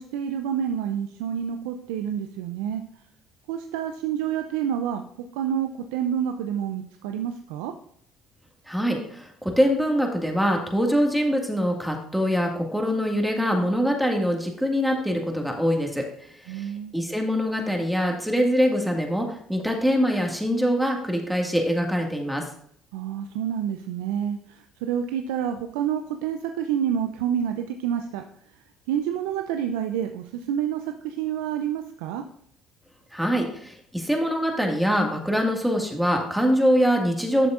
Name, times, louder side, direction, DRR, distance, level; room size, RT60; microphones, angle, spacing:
voice 1, 0.0-2.8 3.5-5.0 5.3-7.7 16.5-16.9 22.9-28.2 28.9-32.2, right 9 dB, 80° right, 6 dB, 0.5 m, -28 dB
voice 2, 8.7-22.5 33.1-37.5, equal, ahead, 1 dB, 1.9 m, -24 dB
12.0 x 6.7 x 2.5 m, 0.65 s
hypercardioid pair, 65°, 0 cm